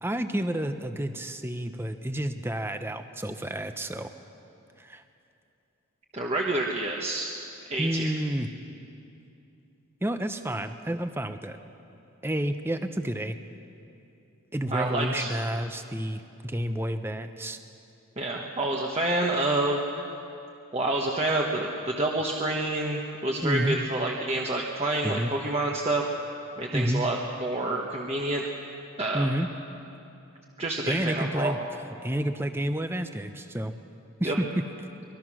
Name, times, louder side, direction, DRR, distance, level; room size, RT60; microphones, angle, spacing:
voice 1, 0.0-4.1 4.8-5.0 7.8-8.5 10.0-11.6 12.2-13.4 14.5-17.6 23.4-23.8 25.0-25.3 26.7-27.1 29.1-29.5 30.8-31.6 32.0-33.7 34.2-34.6, right 1 dB, 10° right, 8 dB, 0.8 m, -30 dB
voice 2, 6.1-7.3 7.7-8.1 14.7-15.3 18.2-20.1 20.7-26.0 26.6-28.4 29.0-29.3 30.6-31.5 34.2-34.4, right 2 dB, 25° right, -1 dB, 1.2 m, -28 dB
24.5 x 21.0 x 6.2 m, 2.8 s
head